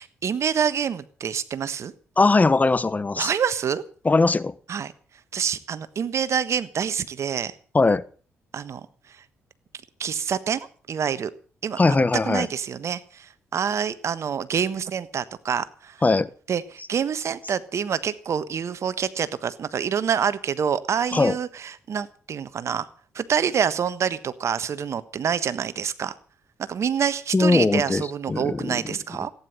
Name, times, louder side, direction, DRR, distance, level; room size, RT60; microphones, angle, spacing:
voice 1, 0.0-1.9 3.2-3.8 4.7-4.9 5.3-7.5 8.5-9.2 10.0-11.3 11.6-11.9 12.2-16.0 16.5-22.9 23.1-26.2 26.7-29.3, right 7 dB, 55° right, 1.3 m, -27 dB
voice 2, 2.2-3.3 4.0-4.5 7.7-8.0 11.8-12.5 16.0-16.3 21.1-21.4 27.3-28.8, left 3 dB, 25° left, 1.1 m, -20 dB
16.5 x 9.9 x 7.9 m
hypercardioid pair, 45°, 6 cm